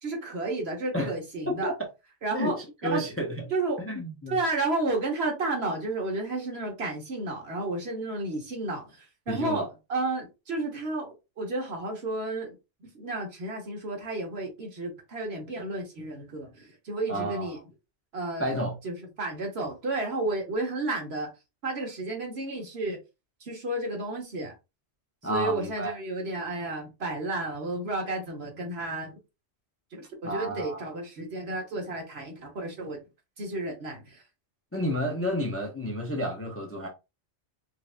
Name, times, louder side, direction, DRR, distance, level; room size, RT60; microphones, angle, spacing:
voice 1, 0.0-1.7 2.2-2.6 2.8-3.0 3.5-3.8 4.3-8.9 9.3-11.1 11.4-12.5 12.9-17.6 18.1-18.5 18.8-21.3 21.6-23.0 23.4-24.5 25.3-29.1 29.9-33.0 33.4-34.2, right 2 dB, 65° right, 1.4 m, -32 dB
voice 2, 1.5-1.9 2.3-3.5 3.8-4.4 9.3-9.7 17.1-17.6 18.4-18.8 25.2-25.9 30.2-31.0 34.7-36.9, equal, 20° left, 0.5 m, -31 dB
4.7 x 2.4 x 2.4 m
omnidirectional pair, 1.2 m